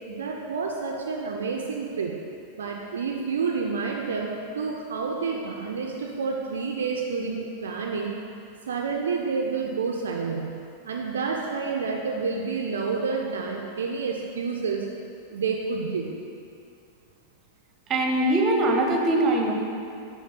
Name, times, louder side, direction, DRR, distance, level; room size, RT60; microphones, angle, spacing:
voice 1, 0.1-2.2 2.6-8.1 8.6-10.6 10.8-14.9 15.3-16.1, right 5 dB, 65° right, 0 dB, 0.4 m, -29 dB
voice 2, 17.9-19.5, right 1 dB, 25° right, 1 dB, 0.8 m, -22 dB
6.4 x 3.3 x 5.5 m, 2.5 s
figure-of-eight pair, 90°, 0 cm